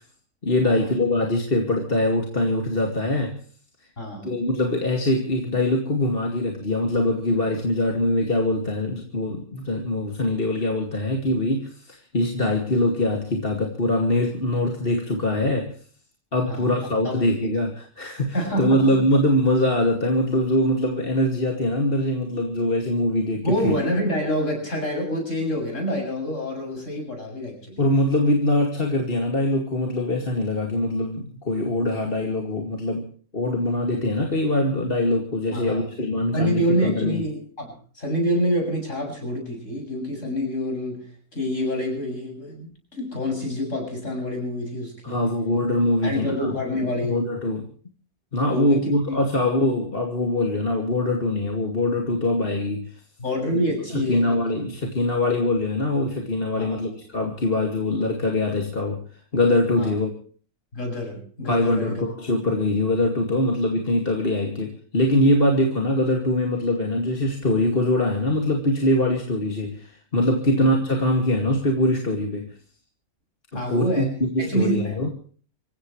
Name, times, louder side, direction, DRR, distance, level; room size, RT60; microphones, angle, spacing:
voice 1, 0.4-3.4 4.2-15.7 16.3-23.7 27.8-37.2 45.0-46.5 47.1-47.6 48.3-52.9 53.9-59.0 59.3-60.1 61.5-72.5 73.5-75.1, left 1 dB, 35° left, 2 dB, 2.6 m, -23 dB
voice 2, 4.0-4.3 16.4-16.7 17.0-17.5 18.3-19.0 23.4-27.9 35.5-35.8 36.3-45.3 46.0-47.3 48.5-49.2 53.2-54.4 56.6-56.9 59.7-59.9 60.7-62.0 70.5-70.7 73.5-74.1 74.4-75.0, equal, 55° left, 2 dB, 7.8 m, -27 dB
26.0 x 16.0 x 3.2 m, 0.43 s
omnidirectional pair, 1.6 m